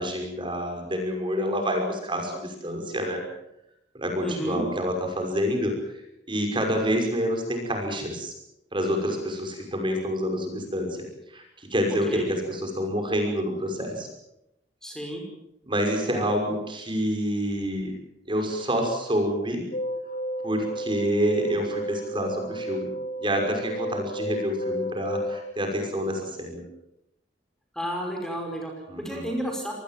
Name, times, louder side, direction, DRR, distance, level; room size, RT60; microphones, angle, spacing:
voice 1, 0.0-3.2 3.9-5.7 6.3-8.3 8.7-11.0 11.3-14.1 15.7-17.9 18.3-19.6 20.4-22.9 23.2-26.6 28.9-29.3, equal, 30° right, 3 dB, 5.9 m, -27 dB
voice 2, 4.2-4.6 12.1-12.2 14.8-15.2 27.7-29.7, equal, 5° left, 2 dB, 5.5 m, -31 dB
sound 1, 19.7-25.5, right 1 dB, 50° left, 1.4 m, -32 dB
26.5 x 19.5 x 7.6 m, 0.82 s
head